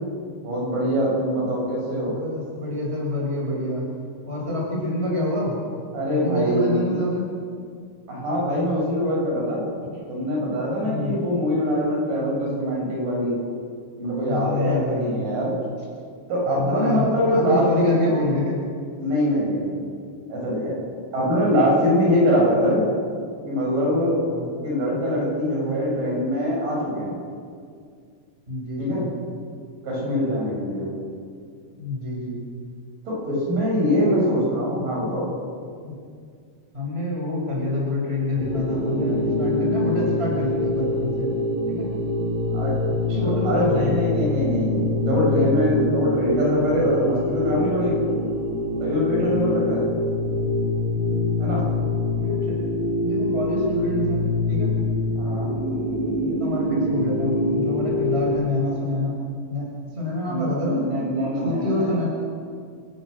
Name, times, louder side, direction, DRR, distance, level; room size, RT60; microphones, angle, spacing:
voice 1, 0.4-2.1 5.9-7.0 8.1-9.6 10.1-13.4 14.0-15.5 16.3-18.1 19.0-19.7 20.3-20.7 21.1-22.8 23.4-24.2 24.6-27.2 28.8-29.0 29.8-30.9 33.1-35.3 42.5-42.7 43.1-48.1 48.8-49.9 51.4-51.7 55.1-55.5 60.3-62.0, equal, 85° right, -4 dB, 9.0 m, -23 dB
voice 2, 2.0-3.9 4.3-5.6 6.1-7.3 9.8-10.0 10.8-11.2 14.2-15.3 16.5-18.6 24.3-24.5 28.5-29.1 31.7-32.4 34.0-34.2 35.8-36.0 36.7-41.3 41.7-41.9 43.1-44.0 49.2-49.4 52.1-52.6 53.0-54.2 54.5-54.7 56.2-59.2 59.5-60.9 61.4-62.1, left 1 dB, 15° right, -3 dB, 6.4 m, -27 dB
sound 1, 38.4-58.3, left 2 dB, 60° right, 7.4 m, -25 dB
29.0 x 16.0 x 6.6 m, 2.2 s
omnidirectional pair, 3.7 m